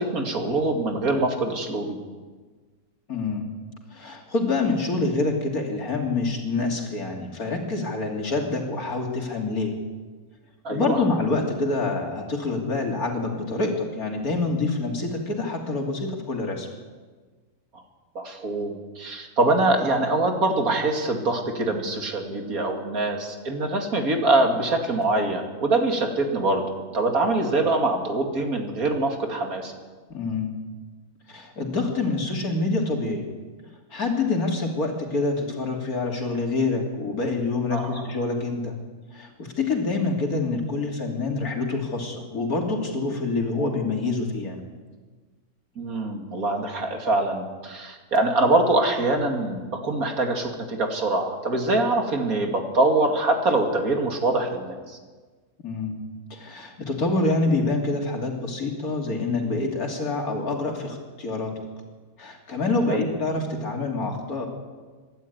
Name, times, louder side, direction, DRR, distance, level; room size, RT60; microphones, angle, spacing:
voice 1, 0.0-2.0 10.6-11.0 18.1-26.6 26.9-29.7 37.7-38.0 45.8-55.0 62.9-63.1, right 2 dB, 70° right, 4 dB, 2.9 m, -24 dB
voice 2, 3.1-3.5 3.9-9.7 10.7-16.7 30.1-30.6 31.3-33.2 33.9-38.8 39.1-44.6 55.6-56.0 56.3-61.6 62.2-64.5, left 3 dB, 70° left, 2 dB, 3.5 m, -26 dB
25.0 x 12.0 x 9.4 m, 1.4 s
omnidirectional pair, 1.6 m